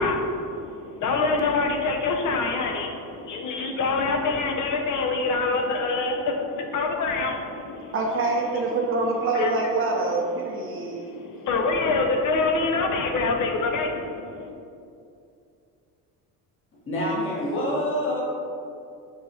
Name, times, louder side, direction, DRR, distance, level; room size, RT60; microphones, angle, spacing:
voice 1, 0.0-8.0 9.3-9.5 10.7-14.5, left 3 dB, 50° left, 3 dB, 0.6 m, -26 dB
voice 2, 7.9-11.0, right 3 dB, 30° right, 0 dB, 0.7 m, -25 dB
voice 3, 16.9-18.2, equal, 30° left, -6 dB, 1.1 m, -26 dB
4.7 x 2.3 x 4.1 m, 2.5 s
cardioid pair, 115°, 40 cm